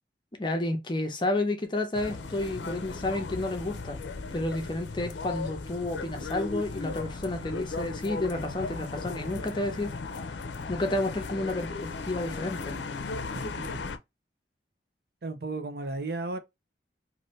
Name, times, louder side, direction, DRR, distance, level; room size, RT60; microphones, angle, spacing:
voice 1, 0.4-4.0 4.3-9.9 10.7-11.7 12.0-12.8, left 2 dB, 25° left, 0.7 m, -30 dB
sound 1, 1.9-14.0, left 3 dB, 85° left, 0.5 m, -37 dB
voice 2, 13.4-13.8 15.2-16.4, right 3 dB, 60° right, 0.6 m, -34 dB
2.6 x 2.6 x 3.1 m
head